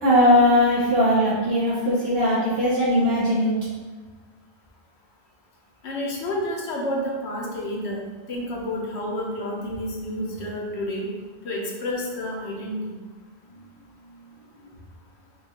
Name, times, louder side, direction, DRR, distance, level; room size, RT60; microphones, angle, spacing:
voice 1, 0.0-3.5, left 1 dB, 70° right, -9 dB, 1.1 m, -19 dB
voice 2, 5.8-11.1 11.4-13.0, left 1 dB, 85° left, -2 dB, 1.0 m, -30 dB
5.0 x 2.3 x 2.9 m, 1.4 s
omnidirectional pair, 1.1 m